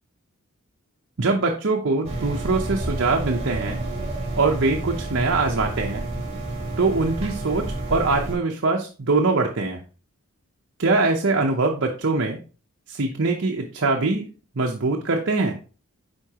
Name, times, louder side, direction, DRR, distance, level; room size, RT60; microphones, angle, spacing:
voice 1, 1.2-3.8 4.4-6.0 6.8-9.8 10.8-12.4 12.9-14.2 14.6-15.5, right 3 dB, 55° right, 1 dB, 0.8 m, -22 dB
sound 1, 2.0-8.3, right 1 dB, 30° right, 2.2 m, -30 dB
9.6 x 4.5 x 2.9 m, 0.35 s
head